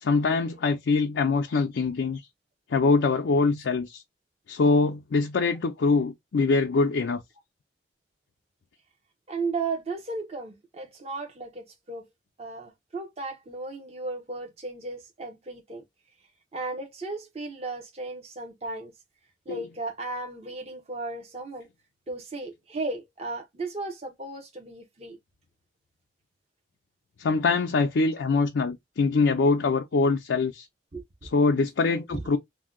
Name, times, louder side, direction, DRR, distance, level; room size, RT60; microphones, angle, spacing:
voice 1, 0.0-2.2 2.7-4.0 4.5-7.2 19.5-19.6 27.2-30.7 31.3-32.4, left 4 dB, 75° left, 0.4 m, -23 dB
voice 2, 9.3-12.1 12.4-15.8 16.5-18.9 19.5-21.7 22.1-25.2 30.9-31.0 32.1-32.2, right 3 dB, 35° right, 0.7 m, -35 dB
2.7 x 2.1 x 3.6 m
head